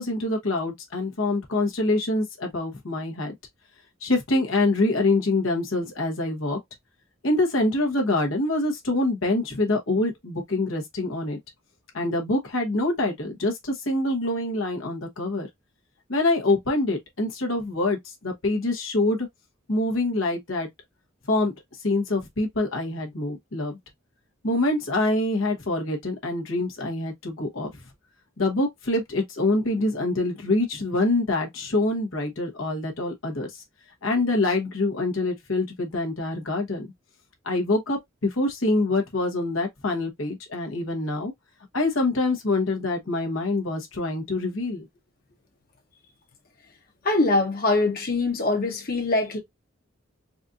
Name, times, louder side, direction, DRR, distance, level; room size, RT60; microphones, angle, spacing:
voice 1, 0.0-3.3 4.0-6.6 7.2-11.4 11.9-15.5 16.1-19.3 19.7-20.7 21.3-21.5 21.8-23.7 24.4-27.7 28.4-33.6 34.0-36.9 37.4-41.3 41.7-44.9, left 2 dB, 80° left, 1.2 m, -25 dB
voice 2, 47.0-49.4, left 2 dB, 50° left, 1.1 m, -23 dB
4.2 x 2.6 x 2.4 m
head